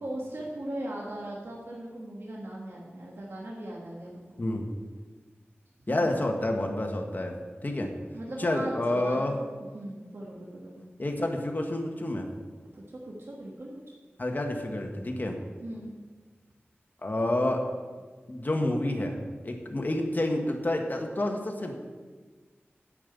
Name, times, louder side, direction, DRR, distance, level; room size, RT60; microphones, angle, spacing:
voice 1, 0.0-4.4 5.9-6.1 8.1-9.3 9.7-10.9 12.7-13.7 15.6-15.9, right 1 dB, 70° right, -4 dB, 1.7 m, -39 dB
voice 2, 5.9-7.9 8.4-9.4 11.0-12.3 14.2-15.4 17.0-17.6 18.3-21.7, left 1 dB, 45° left, 3 dB, 1.5 m, -29 dB
10.0 x 5.4 x 8.1 m, 1.4 s
wide cardioid pair, 65°, 4 cm